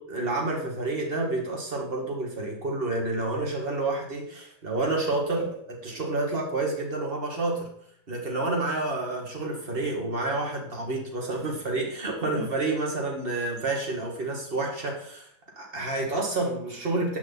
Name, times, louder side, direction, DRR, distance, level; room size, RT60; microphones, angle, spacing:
voice 1, 0.1-7.7 8.1-15.3 15.6-17.2, right 2 dB, 30° right, 0 dB, 2.5 m, -29 dB
10.0 x 8.5 x 4.2 m, 0.67 s
omnidirectional pair, 2.1 m